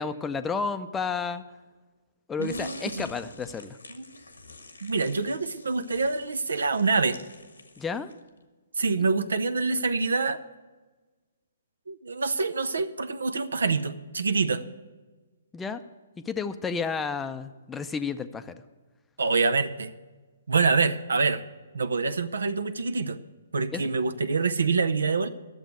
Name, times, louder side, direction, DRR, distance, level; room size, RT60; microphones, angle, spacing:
voice 1, 0.0-1.4 2.3-3.8 7.8-8.1 15.5-15.8 16.3-18.6 23.7-23.8, left 5 dB, 10° left, 10 dB, 0.5 m, -31 dB
sound 1, 2.4-8.3, left 3 dB, 85° left, 1.4 m, -47 dB
voice 2, 2.4-3.1 3.9-4.2 4.8-7.2 8.8-10.4 11.9-14.6 19.2-19.9 20.5-21.4 21.7-23.2 23.5-25.3, right 4 dB, 75° right, 12 dB, 0.7 m, -26 dB
12.0 x 7.1 x 9.3 m, 1.3 s
figure-of-eight pair, 130°, 0 cm